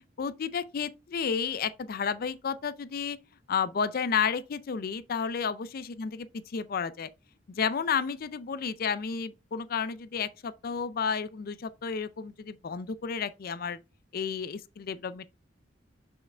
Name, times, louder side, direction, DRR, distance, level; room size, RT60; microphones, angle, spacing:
voice 1, 0.2-3.2 3.5-7.1 7.5-13.8 14.1-15.2, left 6 dB, 50° left, 0.4 m, -31 dB
6.6 x 5.7 x 3.3 m
head